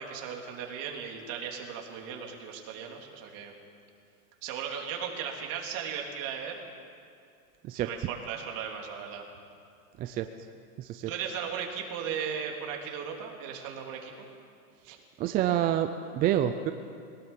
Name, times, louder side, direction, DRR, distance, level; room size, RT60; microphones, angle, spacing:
voice 1, 0.0-3.5 4.4-6.6 7.8-9.3 11.1-14.3 14.8-15.0, right 7 dB, 45° right, 1 dB, 3.5 m, -37 dB
voice 2, 7.6-8.1 10.0-10.3 10.8-11.1 15.2-16.7, right 11 dB, 20° right, 8 dB, 0.4 m, -28 dB
22.0 x 18.0 x 7.4 m, 2.4 s
supercardioid pair, 140°, 46 cm